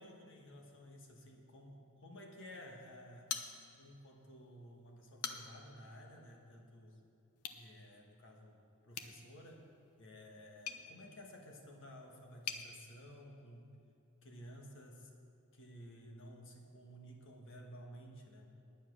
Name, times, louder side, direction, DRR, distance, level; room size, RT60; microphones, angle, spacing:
voice 1, 0.0-3.3 3.8-7.0 7.5-8.6 8.8-9.7 10.0-13.8 14.2-15.1 15.5-18.5, equal, 60° left, 1 dB, 1.4 m, -54 dB
sound 1, 3.3-4.0 4.4-4.5 5.0-5.7 7.4-7.6 8.9-12.7, left 7 dB, 85° left, 0.8 m, -46 dB
10.0 x 9.2 x 6.3 m, 2.6 s
head